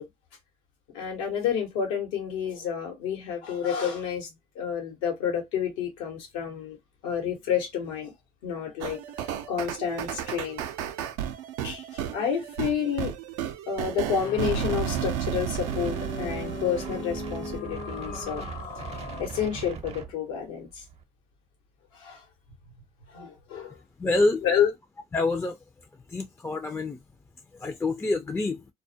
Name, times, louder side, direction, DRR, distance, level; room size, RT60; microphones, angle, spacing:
voice 1, 0.9-4.3 4.5-6.8 7.0-8.1 8.4-9.0 9.5-10.6 11.6-13.1 13.7-18.5 19.2-20.8 22.0-22.2 23.1-23.8 24.4-24.7, left 8 dB, 90° left, 1.0 m, -29 dB
sound 1, 8.8-17.6, right 10 dB, 85° right, 0.4 m, -33 dB
sound 2, 14.2-19.3, left 5 dB, 50° left, 0.7 m, -39 dB
Wind, 15.5-21.0, right 6 dB, 35° right, 0.5 m, -41 dB
voice 2, 24.0-24.4 25.1-25.6 26.1-27.0 27.6-28.6, left 2 dB, 15° left, 0.3 m, -26 dB
2.2 x 2.1 x 2.7 m
supercardioid pair, 70°, 17 cm